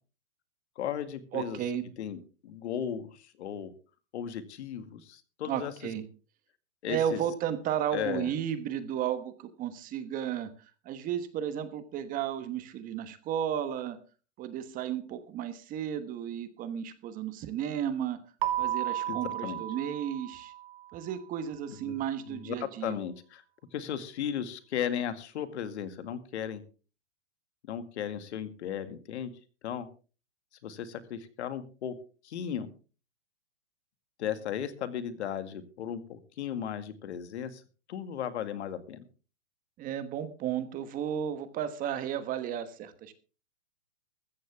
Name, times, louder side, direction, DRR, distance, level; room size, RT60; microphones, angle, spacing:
voice 1, 0.8-1.6 2.0-3.7 4.1-5.7 6.8-7.2 7.9-8.3 19.1-19.6 21.7-22.0 22.3-23.4 23.7-26.6 27.7-29.3 29.6-29.9 30.6-32.0 32.2-32.7 34.2-37.6 37.9-39.0, left 9 dB, 65° left, 11 dB, 2.0 m, -36 dB
voice 2, 1.3-1.9 5.4-6.0 6.9-14.0 14.4-18.2 18.6-20.5 20.9-23.0 39.8-43.1, right 9 dB, 20° right, 11 dB, 1.2 m, -33 dB
Keyboard (musical), 18.4-21.0, right 12 dB, 50° right, 2.1 m, -33 dB
14.5 x 14.5 x 3.5 m, 0.36 s
hypercardioid pair, 145°, 37 cm